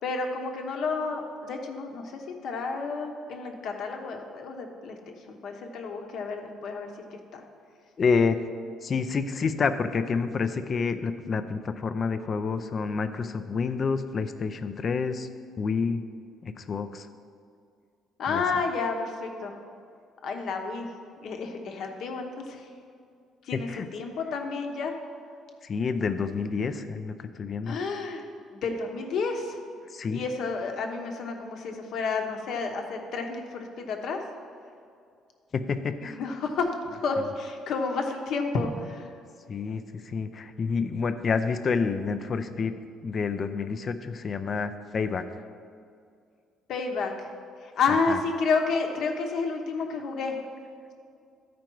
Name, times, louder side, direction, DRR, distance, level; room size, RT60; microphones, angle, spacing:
voice 1, 0.0-5.0 5.3-6.9 7.3-7.4 18.2-19.5 20.2-20.9 21.2-22.7 23.4-24.9 27.6-28.2 28.5-29.6 30.1-34.2 36.0-39.1 46.7-47.3 47.6-50.3, left 4 dB, 55° left, 3 dB, 0.9 m, -30 dB
voice 2, 8.0-8.4 8.8-15.3 15.6-16.0 16.4-17.1 18.3-18.4 23.5-23.9 25.6-27.8 29.9-30.2 35.5-36.2 39.5-42.7 43.0-45.2 48.1-48.2, left 5 dB, 30° left, 10 dB, 0.4 m, -28 dB
13.0 x 5.1 x 4.6 m, 2.3 s
cardioid pair, 165°, 0 cm